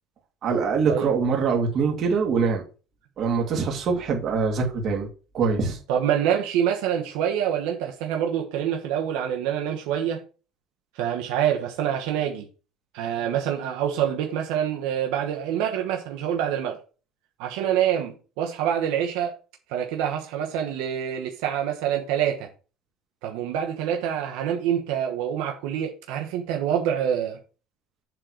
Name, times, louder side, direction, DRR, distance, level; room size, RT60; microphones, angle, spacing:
voice 1, 0.4-2.6 3.2-5.1 5.3-5.8, right 5 dB, 40° right, 2.5 m, -23 dB
voice 2, 5.9-10.2 10.9-12.4 12.9-16.8 17.4-19.3 19.7-22.5 23.2-27.4, right 9 dB, 80° right, 1.1 m, -26 dB
7.4 x 4.0 x 6.2 m
cardioid pair, 155°, 0 cm